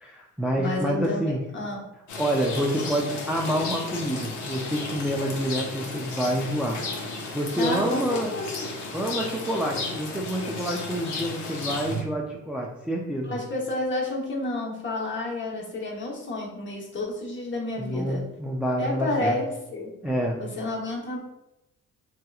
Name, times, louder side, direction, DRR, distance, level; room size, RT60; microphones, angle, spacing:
voice 1, 0.0-1.4 2.2-7.1 7.3-8.3 8.9-13.4 17.8-19.4 20.0-20.4, equal, 5° right, -1 dB, 0.3 m, -28 dB
voice 2, 0.6-1.9 7.6-8.6 13.2-18.3 18.8-19.9 20.4-21.2, left 2 dB, 40° left, -2 dB, 1.0 m, -30 dB
Rain, 2.1-12.0, left 3 dB, 75° left, 0.7 m, -34 dB
3.3 x 2.8 x 2.3 m, 0.90 s
cardioid pair, 90°, 30 cm